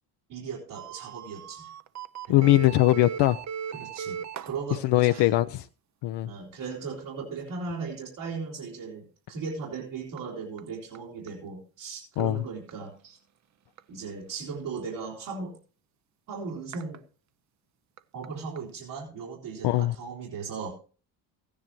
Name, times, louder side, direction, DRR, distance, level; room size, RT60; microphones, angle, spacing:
voice 1, 0.3-1.7 2.3-2.5 3.7-5.3 6.2-13.2 13.9-15.6 16.3-17.0 18.1-20.7, right 5 dB, 75° right, 3.7 m, -37 dB
sound 1, 0.7-4.6 7.5-7.6 8.3-8.4 10.2-10.3 10.6-10.7 10.9-11.0 11.3-11.4 12.2-12.3 12.7-12.8 13.8-13.9 16.7-17.0 18.0-18.1 18.2-18.3 18.6-18.7, right 8 dB, 35° right, 0.6 m, -37 dB
voice 2, 2.3-3.4 4.8-5.7 6.0-6.3 12.2-12.4 19.6-19.9, left 16 dB, 60° left, 0.6 m, -21 dB
15.0 x 10.0 x 3.0 m
supercardioid pair, 70°, 47 cm